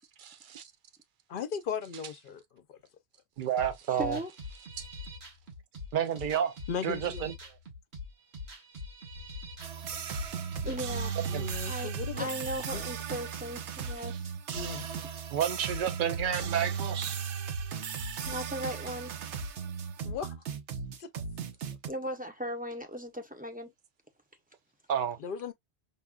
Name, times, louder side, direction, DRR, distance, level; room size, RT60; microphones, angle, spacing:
voice 1, 0.3-0.6 3.4-4.2 5.9-6.5 6.8-7.3 11.3-11.5 15.3-17.2 24.9-25.2, right 9 dB, 55° right, 0.8 m, -30 dB
voice 2, 1.3-2.8 6.7-7.3 11.3-12.3 12.7-12.8 14.5-14.8 20.0-20.4 21.0-21.1 25.2-25.5, left 7 dB, 60° left, 0.7 m, -37 dB
sound 1, 3.6-12.2, left 2 dB, 70° right, 1.5 m, -44 dB
voice 3, 3.9-4.3 9.9-10.1 10.6-11.2 11.7-14.3 18.2-19.1 21.8-23.7, equal, 10° right, 0.6 m, -37 dB
sound 2, 9.6-21.9, right 6 dB, 85° right, 1.0 m, -36 dB
5.4 x 2.3 x 2.2 m
omnidirectional pair, 1.1 m